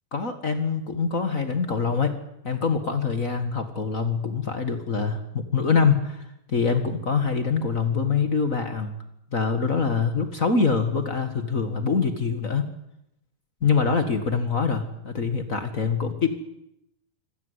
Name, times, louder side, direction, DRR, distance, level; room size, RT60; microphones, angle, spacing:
voice 1, 0.1-2.2 2.4-6.2 6.5-8.9 9.3-12.7 13.6-16.3, left 5 dB, 40° left, 8 dB, 1.3 m, -24 dB
25.0 x 18.0 x 8.1 m, 0.80 s
omnidirectional pair, 4.0 m